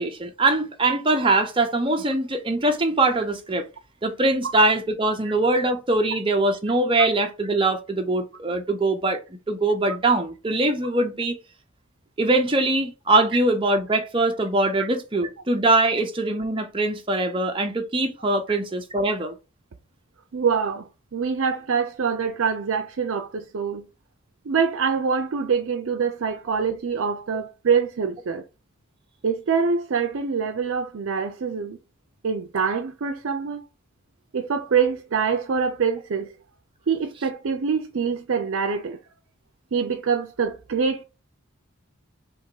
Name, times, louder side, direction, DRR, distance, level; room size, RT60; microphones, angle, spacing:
voice 1, 0.0-3.7 4.0-9.2 9.5-11.4 12.2-19.4, right 2 dB, 25° right, 0.6 m, -22 dB
voice 2, 20.3-23.9 24.4-28.4 29.2-31.8 32.2-33.6 34.3-36.3 36.9-39.0 39.7-41.0, right 6 dB, 65° right, 0.5 m, -25 dB
3.5 x 3.0 x 4.6 m
head